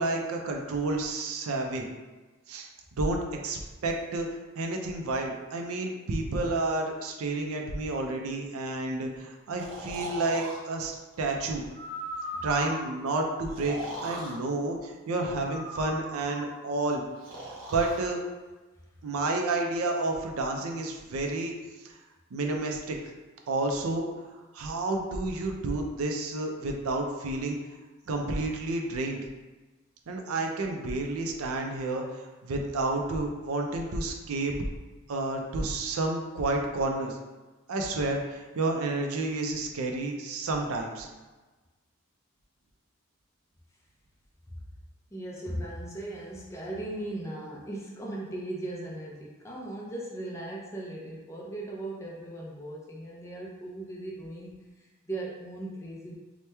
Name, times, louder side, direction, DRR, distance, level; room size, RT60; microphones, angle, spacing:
voice 1, 0.0-1.9 2.5-2.7 3.0-4.3 4.6-10.9 11.2-11.6 12.4-17.0 17.7-18.2 19.0-21.5 21.8-21.9 22.3-23.0 23.5-24.1 24.5-27.6 28.1-29.2 30.1-34.5 35.1-37.2 37.7-41.1, right 2 dB, 90° right, 2 dB, 0.4 m, -30 dB
Breathing, 9.6-10.6 11.7-12.9 13.5-14.4 15.3-16.6 17.2-18.0, right 1 dB, 65° right, 0.8 m, -38 dB
voice 2, 45.1-56.2, right 1 dB, 15° left, -4 dB, 0.4 m, -38 dB
2.9 x 2.1 x 3.3 m, 1.2 s
head